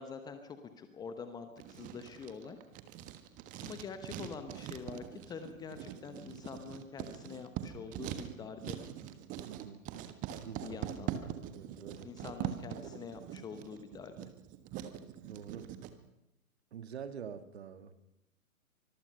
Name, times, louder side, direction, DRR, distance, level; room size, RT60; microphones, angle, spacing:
voice 1, 0.0-2.6 3.6-8.8 10.6-11.3 12.0-14.3, left 6 dB, 10° left, 9 dB, 1.0 m, -46 dB
Writing, 1.6-15.9, right 11 dB, 20° right, 1.4 m, -43 dB
voice 2, 9.5-9.8 10.4-10.8 11.5-12.1 15.0-15.7 16.7-17.9, right 7 dB, 50° right, 10 dB, 1.9 m, -46 dB
24.5 x 21.5 x 5.5 m, 0.85 s
figure-of-eight pair, 120°, 43 cm